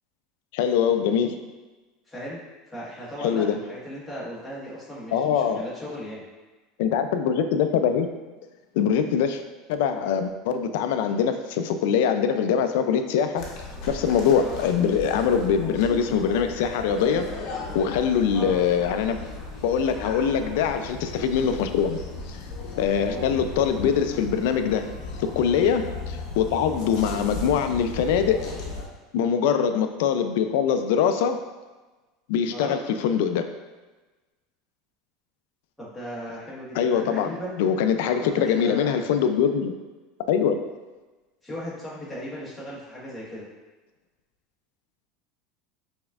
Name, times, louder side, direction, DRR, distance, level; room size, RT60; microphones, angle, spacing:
voice 1, 0.5-1.4 3.2-3.6 5.1-5.6 6.8-8.1 8.8-9.4 9.7-13.4 13.9-17.3 17.7-19.2 19.6-22.0 22.8-24.8 25.2-28.4 29.1-31.4 32.3-33.5 36.8-39.7 40.3-40.6, left 7 dB, 75° left, 8 dB, 0.4 m, -23 dB
voice 2, 2.1-2.4 2.7-6.2 14.4-14.6 18.3-18.6 23.1-23.3 27.0-27.2 32.5-32.8 35.8-37.6 38.0-39.2 41.4-43.5, equal, 5° left, -9 dB, 1.3 m, -37 dB
sound 1, 13.4-28.9, left 3 dB, 50° left, 0.8 m, -36 dB
5.1 x 3.5 x 2.4 m, 1.2 s
supercardioid pair, 150°, 0 cm